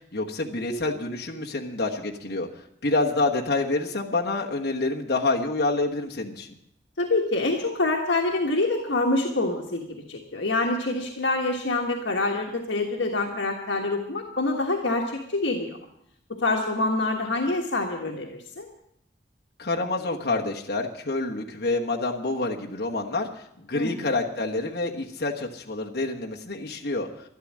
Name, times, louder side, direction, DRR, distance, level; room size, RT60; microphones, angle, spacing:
voice 1, 0.0-2.5 2.8-6.5 19.6-23.3 23.6-27.1, left 2 dB, 55° left, -1 dB, 1.3 m, -27 dB
voice 2, 7.0-15.8 16.3-18.7 23.7-24.1, left 2 dB, 80° left, 1 dB, 1.4 m, -26 dB
12.5 x 11.5 x 7.4 m, 0.74 s
head